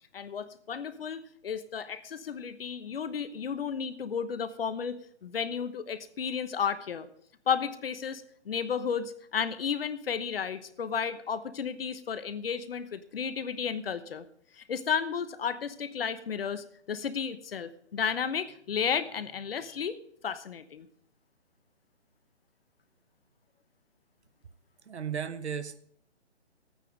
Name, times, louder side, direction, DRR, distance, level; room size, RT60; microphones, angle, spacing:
voice 1, 0.1-7.1 7.5-14.3 14.6-20.0 20.2-20.9, left 7 dB, 55° left, 12 dB, 1.1 m, -33 dB
voice 2, 24.9-25.8, right 7 dB, 70° right, 12 dB, 1.1 m, -35 dB
13.0 x 9.1 x 5.2 m, 0.64 s
hypercardioid pair, 150°, 34 cm